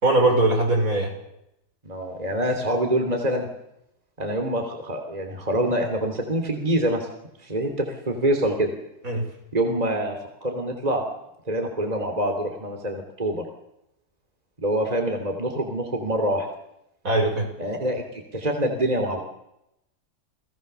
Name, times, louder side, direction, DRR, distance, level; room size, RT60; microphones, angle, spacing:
voice 1, 0.0-1.1 9.0-9.3 17.0-17.5, right 2 dB, 55° right, 3 dB, 5.9 m, -20 dB
voice 2, 1.8-3.5 4.2-7.1 7.4-8.7 9.5-10.1 10.4-11.0 11.5-13.4 14.6-16.5 17.6-19.2, right 1 dB, 25° right, 4 dB, 3.3 m, -25 dB
29.5 x 20.0 x 7.0 m, 0.84 s
omnidirectional pair, 1.7 m